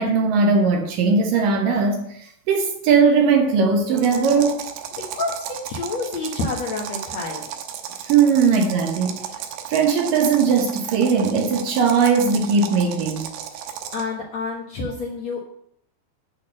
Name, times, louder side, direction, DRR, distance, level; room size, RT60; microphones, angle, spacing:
voice 1, 0.0-4.6 8.0-9.2 9.7-13.3, right 5 dB, 70° right, 2.3 m, -19 dB
sound 1, 4.0-14.1, right 9 dB, 90° right, 3.0 m, -34 dB
voice 2, 4.9-7.4 13.5-15.4, left 3 dB, 65° left, 1.8 m, -29 dB
8.6 x 6.1 x 7.6 m
omnidirectional pair, 4.7 m